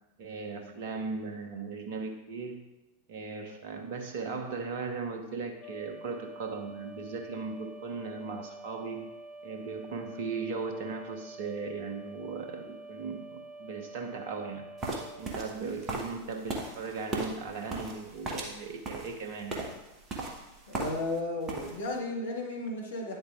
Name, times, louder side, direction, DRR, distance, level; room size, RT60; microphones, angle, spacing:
voice 1, 0.2-2.6 3.1-9.1 9.4-14.6 15.2-19.7, right 4 dB, 50° right, 4 dB, 1.2 m, -38 dB
sound 1, 5.6-15.2, right 2 dB, 20° left, 1.8 m, -47 dB
sound 2, 14.8-21.2 21.4-22.0, right 2 dB, 30° right, 1.5 m, -37 dB
voice 2, 20.7-23.2, left 2 dB, 65° left, 0 dB, 1.7 m, -34 dB
9.8 x 7.8 x 2.5 m, 0.99 s
figure-of-eight pair, 90°, 0 cm